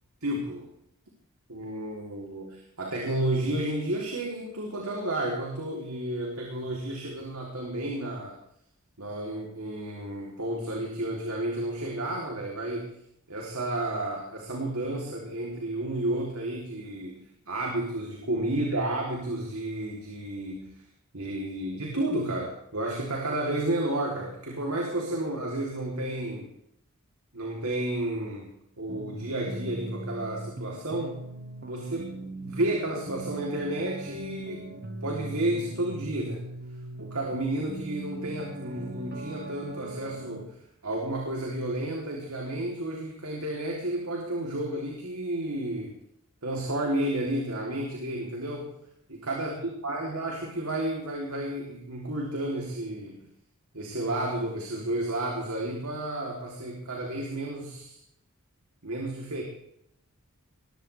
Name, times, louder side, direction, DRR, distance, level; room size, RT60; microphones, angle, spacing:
voice 1, 0.2-0.7 1.5-8.4 9.0-13.0 13.3-20.8 21.1-26.5 27.3-31.2 31.6-34.7 35.0-36.4 37.0-45.9 46.4-48.7 49.1-53.3 53.7-58.0 58.8-59.4, right 1 dB, 90° right, -1 dB, 3.4 m, -32 dB
sound 1, 28.9-40.4, right 2 dB, 50° right, 1.5 m, -39 dB
21.0 x 15.0 x 3.5 m, 0.74 s
head